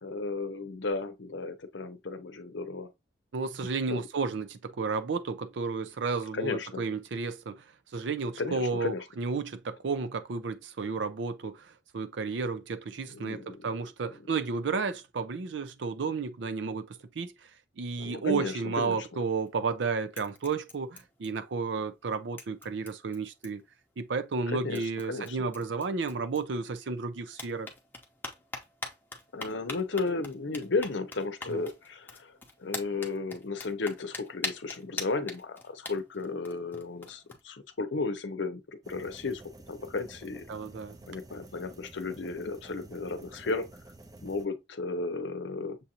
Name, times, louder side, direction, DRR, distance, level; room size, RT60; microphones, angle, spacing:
voice 1, 0.0-2.9 3.9-4.0 6.3-6.8 8.4-9.0 13.1-13.6 18.0-19.1 24.5-25.5 29.3-32.3 32.6-39.4 39.7-40.5 41.1-43.7 44.2-45.8, left 3 dB, 75° left, 0.7 m, -34 dB
voice 2, 3.3-7.6 7.9-17.3 17.8-23.6 24.0-27.7 31.5-31.7 40.5-41.0, right 4 dB, 75° right, 0.5 m, -32 dB
sound 1, 19.3-19.8 20.1-21.7 22.0-22.1 22.4-23.8 24.4-24.5 24.8-26.9 27.3-37.4, left 3 dB, 10° left, 0.7 m, -43 dB
sound 2, 38.8-44.5, right 2 dB, 20° right, 0.5 m, -51 dB
6.8 x 2.5 x 2.8 m
head